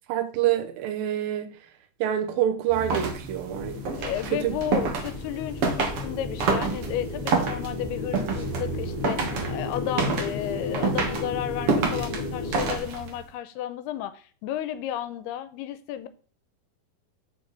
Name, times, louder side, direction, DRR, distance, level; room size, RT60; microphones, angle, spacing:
voice 1, 0.1-1.6 2.0-3.8 4.3-4.6, right 11 dB, 70° right, 2.6 m, -26 dB
sound 1, 2.7-13.2, right 4 dB, 55° right, 1.7 m, -29 dB
sound 2, 3.5-12.8, left 4 dB, 65° left, 1.4 m, -34 dB
voice 2, 4.0-16.1, left 11 dB, 90° left, 2.7 m, -33 dB
6.6 x 6.6 x 4.1 m
omnidirectional pair, 4.5 m